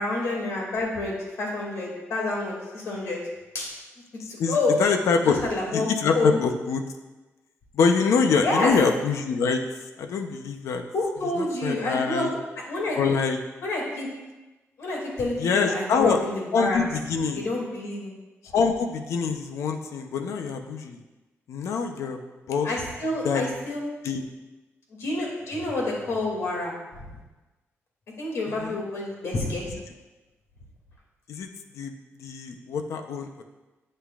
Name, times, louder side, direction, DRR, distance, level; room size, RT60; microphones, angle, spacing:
voice 1, 0.0-3.2 3.5-3.7 4.3-4.8 5.2-5.9 6.1-6.4 8.4-8.7 10.9-12.2 12.7-13.0 13.6-14.1 14.8-16.8 17.3-18.1 22.6-23.8 25.0-26.7 27.0-27.1 28.2-29.7, left 2 dB, 70° left, -2 dB, 2.4 m, -28 dB
voice 2, 4.2-5.4 5.7-6.8 7.7-9.6 10.0-10.8 11.3-12.3 12.9-13.4 15.4-16.2 16.5-17.4 18.4-21.0 21.5-22.2 22.5-22.7 23.2-23.5 24.0-24.2 28.5-28.8 31.3-31.5 31.7-31.9 32.2-33.4, left 5 dB, 85° left, 6 dB, 0.8 m, -25 dB
11.5 x 7.9 x 2.5 m, 1.1 s
wide cardioid pair, 140°, 5 cm